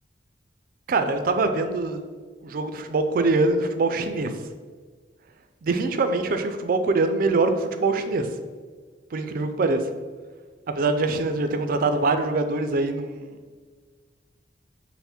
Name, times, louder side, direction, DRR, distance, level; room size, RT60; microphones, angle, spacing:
voice 1, 0.9-2.0 2.4-4.4 5.6-8.3 9.1-9.8 10.8-13.4, right 3 dB, 55° right, 8 dB, 0.4 m, -23 dB
5.6 x 2.1 x 4.2 m, 1.5 s
head